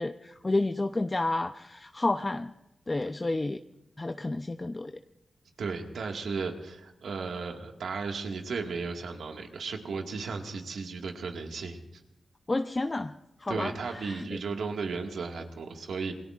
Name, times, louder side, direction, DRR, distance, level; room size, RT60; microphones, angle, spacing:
voice 1, 0.0-2.5 2.9-3.6 4.0-4.9 12.5-13.1 13.4-14.3, left 2 dB, 30° left, 7 dB, 0.6 m, -30 dB
voice 2, 5.6-11.8 13.5-16.1, right 4 dB, 85° right, 2 dB, 1.8 m, -35 dB
27.5 x 20.5 x 2.5 m, 0.89 s
cardioid pair, 55°, 0 cm